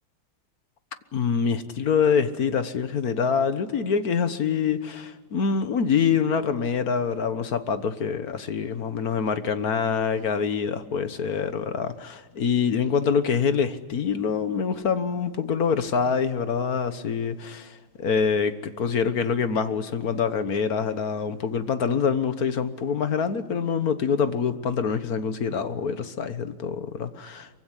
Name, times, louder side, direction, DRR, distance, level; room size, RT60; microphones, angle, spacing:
voice 1, 1.1-27.5, left 6 dB, 50° left, 1.5 m, -25 dB
24.0 x 24.0 x 9.9 m
omnidirectional pair, 2.3 m